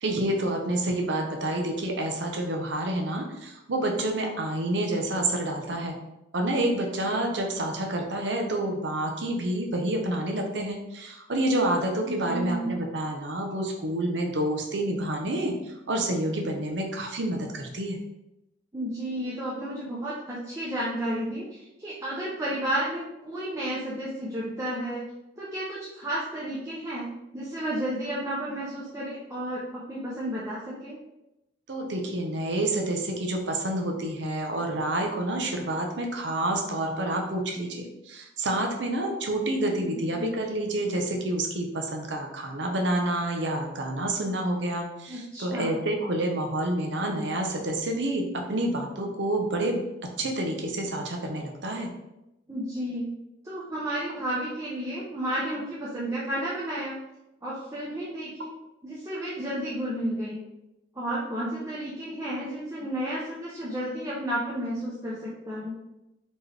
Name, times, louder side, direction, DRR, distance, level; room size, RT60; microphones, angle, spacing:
voice 1, 0.0-6.0 6.3-18.0 31.7-49.8 50.2-51.9, right 1 dB, 70° right, 2 dB, 0.8 m, -28 dB
voice 2, 12.1-12.7 18.7-25.0 25.4-27.1 27.3-31.0 39.8-40.3 45.1-45.8 52.5-53.1 53.4-57.0 57.4-58.6 58.8-60.4 60.9-65.8, right 1 dB, 15° right, -8 dB, 0.7 m, -32 dB
4.3 x 3.1 x 3.3 m, 0.91 s
head